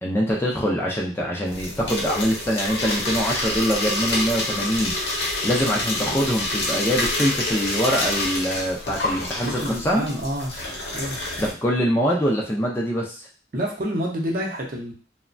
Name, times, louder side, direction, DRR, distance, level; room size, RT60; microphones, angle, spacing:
voice 1, 0.0-4.9 5.4-10.1 11.4-13.3, equal, 15° left, -2 dB, 0.3 m, -24 dB
sound 1, 1.4-11.5, left 1 dB, 65° left, 0.7 m, -27 dB
voice 2, 9.4-10.5 10.9-11.2 13.5-14.9, equal, 50° right, 0 dB, 0.6 m, -28 dB
3.0 x 2.1 x 2.5 m, 0.37 s
head